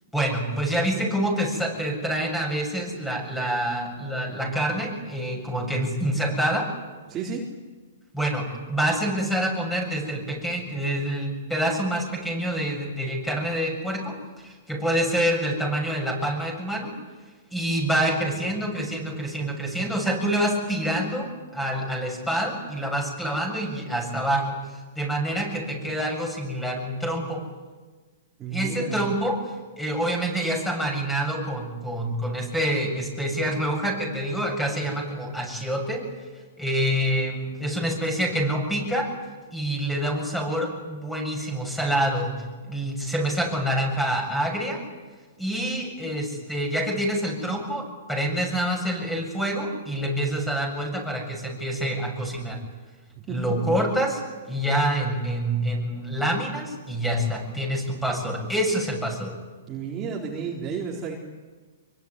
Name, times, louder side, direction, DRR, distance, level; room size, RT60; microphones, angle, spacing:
voice 1, 0.1-6.7 8.1-14.1 14.4-16.9 17.5-21.3 21.5-27.4 28.5-29.4 29.8-36.0 36.6-39.1 39.5-42.3 42.6-44.8 45.4-52.6 53.3-54.2 54.5-59.3, right 1 dB, 5° left, 2 dB, 7.6 m, -26 dB
voice 2, 7.1-7.4 28.4-29.2 53.3-53.6 59.7-61.2, right 6 dB, 20° right, -3 dB, 4.0 m, -32 dB
25.0 x 23.5 x 9.8 m, 1.4 s
hypercardioid pair, 145°, 0 cm